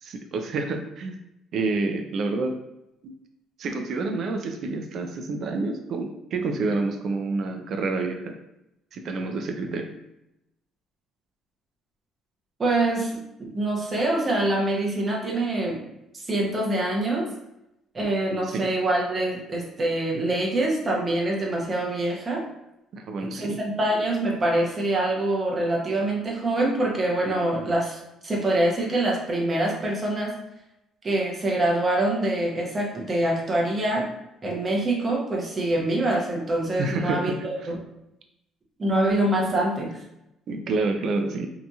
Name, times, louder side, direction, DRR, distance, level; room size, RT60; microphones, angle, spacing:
voice 1, 0.0-1.2 1.5-2.6 3.0-3.1 3.6-8.4 8.9-9.9 18.5-18.7 22.9-23.6 36.8-37.7 40.5-41.5, right 3 dB, 55° right, 5 dB, 0.4 m, -28 dB
voice 2, 12.6-13.1 13.4-15.8 16.1-17.3 17.9-22.4 23.2-30.4 31.0-34.0 34.4-37.8 38.8-40.0, right 1 dB, 30° right, -2 dB, 0.7 m, -25 dB
2.8 x 2.6 x 2.3 m, 0.87 s
cardioid pair, 125°, 0 cm